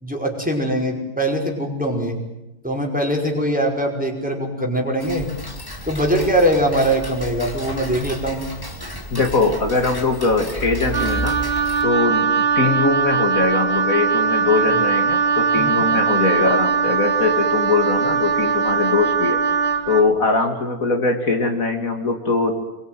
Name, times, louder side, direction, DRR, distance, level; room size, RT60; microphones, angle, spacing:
voice 1, 0.0-2.2 2.6-5.3 5.9-8.4 14.7-14.8 15.5-15.9, right 1 dB, 5° right, 1 dB, 5.5 m, -22 dB
Tick-tock, 5.0-11.8, equal, 15° left, 2.9 m, -32 dB
voice 2, 9.1-11.4 11.8-12.3 12.6-19.4 19.9-22.5, left 3 dB, 60° left, 4 dB, 3.0 m, -21 dB
Wind instrument woodwind instrument, 10.9-20.1, right 5 dB, 40° right, 1.4 m, -20 dB
27.5 x 23.0 x 9.3 m, 0.93 s
omnidirectional pair, 1.6 m